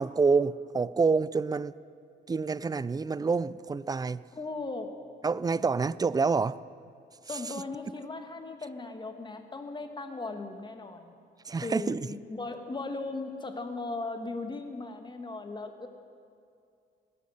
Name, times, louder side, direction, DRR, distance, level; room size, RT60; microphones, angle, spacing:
voice 1, 0.0-1.7 2.3-4.2 5.2-6.6 11.4-12.1, right 4 dB, 20° right, 19 dB, 0.4 m, -27 dB
voice 2, 4.4-4.9 7.2-11.1 11.5-15.9, left 3 dB, 25° left, 6 dB, 1.6 m, -37 dB
18.5 x 11.0 x 6.5 m, 2.4 s
cardioid pair, 90°, 20 cm